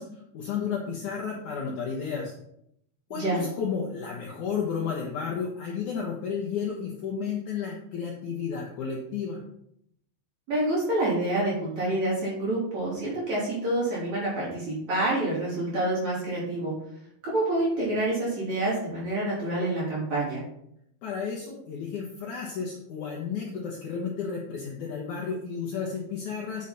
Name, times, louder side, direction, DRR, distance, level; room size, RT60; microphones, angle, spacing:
voice 1, 0.0-2.3 3.1-9.4 21.0-26.7, left 6 dB, 65° left, -2 dB, 2.1 m, -32 dB
voice 2, 3.1-3.4 10.5-16.7 17.2-20.4, right 1 dB, 40° right, -8 dB, 4.1 m, -27 dB
9.2 x 6.5 x 4.2 m, 0.75 s
omnidirectional pair, 5.1 m